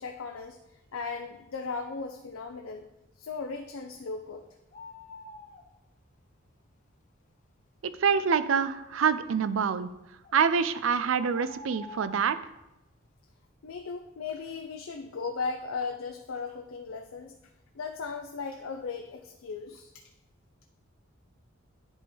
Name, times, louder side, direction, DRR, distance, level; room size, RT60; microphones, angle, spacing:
voice 1, 0.0-2.9 3.2-4.4 13.6-17.4 17.7-19.9, left 4 dB, 85° left, 4 dB, 0.5 m, -37 dB
sound 1, 4.7-5.6 10.2-10.4 11.1-12.3, left 2 dB, 40° left, 0.7 m, -46 dB
voice 2, 8.0-9.9 10.3-12.4, right 6 dB, 70° right, 13 dB, 0.4 m, -26 dB
10.5 x 3.6 x 4.3 m, 0.91 s
head